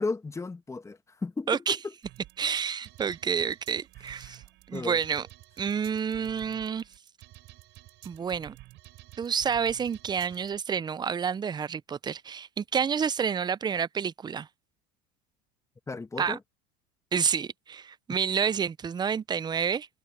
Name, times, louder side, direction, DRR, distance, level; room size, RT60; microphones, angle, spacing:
voice 1, 0.0-1.8 4.3-4.4 4.7-5.0 15.9-16.4, left 3 dB, 15° left, 1.2 m, -34 dB
sound 1, 2.0-10.6, right 17 dB, 60° right, 5.1 m, -51 dB
voice 2, 2.4-4.4 4.7-5.3 5.6-6.8 8.0-8.6 9.2-14.5 16.2-16.4 17.1-19.9, right 7 dB, 20° right, 0.5 m, -29 dB
open air
supercardioid pair, 105°, 21 cm